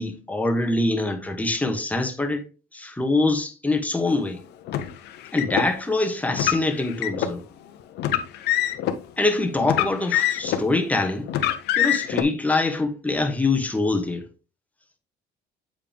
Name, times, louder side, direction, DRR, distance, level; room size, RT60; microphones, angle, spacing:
voice 1, 0.0-2.4 2.7-4.4 5.3-7.4 9.2-11.3 11.8-14.2, left 2 dB, 10° left, 1.3 m, -24 dB
Car, 4.7-5.7 6.3-7.3 8.0-9.0 9.6-10.7 11.3-12.2, left 11 dB, 80° left, 0.9 m, -24 dB
7.5 x 4.9 x 3.4 m
cardioid pair, 110°, 17 cm